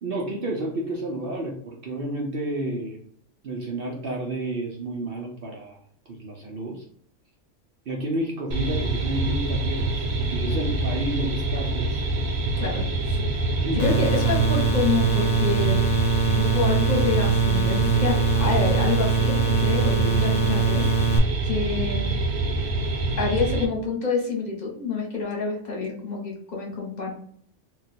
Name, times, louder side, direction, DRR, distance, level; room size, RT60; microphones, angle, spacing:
voice 1, 0.0-3.0 3.4-5.8 6.1-6.8 7.9-12.0 13.6-14.0, right 1 dB, 60° right, -1 dB, 0.7 m, -30 dB
sound 1, 8.5-23.7, right 2 dB, 85° right, 0.9 m, -26 dB
voice 2, 12.6-15.8 16.3-22.1 23.2-27.1, left 4 dB, 40° left, -2 dB, 0.9 m, -28 dB
sound 2, 13.8-21.2, right 5 dB, 75° left, 0.9 m, -23 dB
2.3 x 2.3 x 4.0 m, 0.62 s
omnidirectional pair, 1.3 m